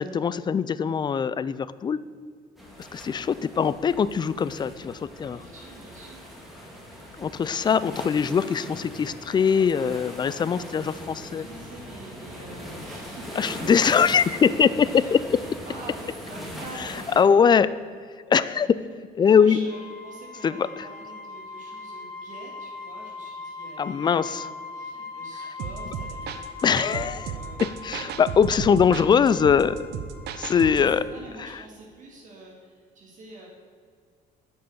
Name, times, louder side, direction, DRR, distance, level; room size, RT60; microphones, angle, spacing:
voice 1, 0.0-2.0 2.9-5.4 7.2-11.5 13.4-15.4 17.2-17.7 18.3-18.7 19.2-19.6 20.4-20.7 23.8-24.4 26.6-27.3 27.6-29.8 30.4-31.0, left 7 dB, 25° left, 16 dB, 0.4 m, -22 dB
sound 1, 2.6-17.2, equal, ahead, 2.2 m, -40 dB
voice 2, 2.8-3.2 5.3-6.2 10.4-13.4 14.8-15.2 15.6-17.3 19.3-24.5 24.7-27.6 30.6-33.5, right 2 dB, 50° right, -2 dB, 2.2 m, -46 dB
sound 2, 19.7-31.1, left 4 dB, 75° left, 1.4 m, -41 dB
sound 3, 25.6-30.9, right 8 dB, 75° right, 0.7 m, -35 dB
9.2 x 5.5 x 7.0 m, 2.1 s
cardioid pair, 110°, 17 cm